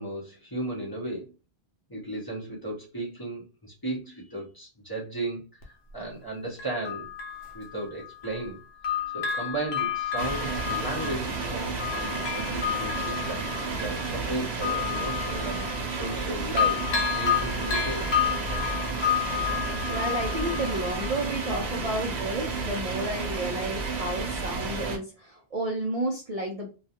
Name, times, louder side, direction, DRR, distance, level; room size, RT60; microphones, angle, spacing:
voice 1, 0.0-1.3 1.9-7.1 7.5-18.1, right 2 dB, 25° left, -4 dB, 0.7 m, -35 dB
Bell, 5.6-5.7 6.6-8.5 8.8-16.3 16.6-21.2 21.6-21.7, left 8 dB, 80° left, 0.9 m, -31 dB
sound 1, 10.2-25.0, right 4 dB, 90° right, 0.9 m, -32 dB
voice 2, 19.9-26.7, right 1 dB, 45° right, -2 dB, 0.5 m, -31 dB
2.4 x 2.2 x 2.7 m, 0.33 s
omnidirectional pair, 1.0 m